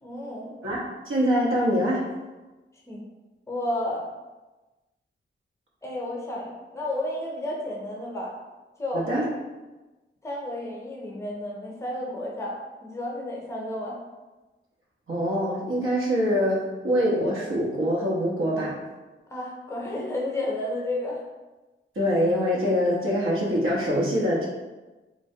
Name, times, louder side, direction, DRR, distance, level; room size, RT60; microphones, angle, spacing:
voice 1, 0.0-0.6 2.9-3.0 3.5-4.1 5.8-8.3 8.8-9.1 10.2-14.0 19.3-21.2, left 1 dB, 15° left, -4 dB, 0.6 m, -32 dB
voice 2, 0.6-2.0 8.9-9.3 15.1-18.8 22.0-24.5, equal, 90° right, -5 dB, 0.8 m, -24 dB
3.2 x 2.1 x 2.7 m, 1.2 s
wide cardioid pair, 135°, 20 cm